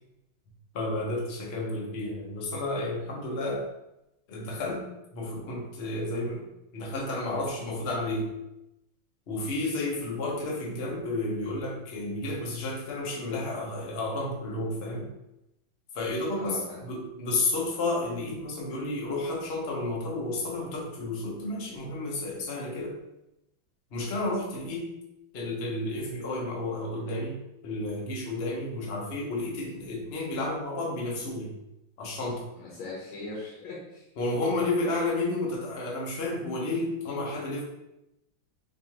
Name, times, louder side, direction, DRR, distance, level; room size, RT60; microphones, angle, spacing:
voice 1, 0.7-3.6 4.3-4.8 5.1-6.5 6.7-8.3 9.3-15.1 15.9-23.0 23.9-24.9 25.3-27.4 27.6-31.5 32.0-32.5 34.2-37.6, left 2 dB, 50° left, -3 dB, 0.7 m, -31 dB
voice 2, 16.3-16.9 32.6-34.0, left 2 dB, 80° left, -4 dB, 1.6 m, -40 dB
4.2 x 3.0 x 2.8 m, 0.90 s
omnidirectional pair, 2.2 m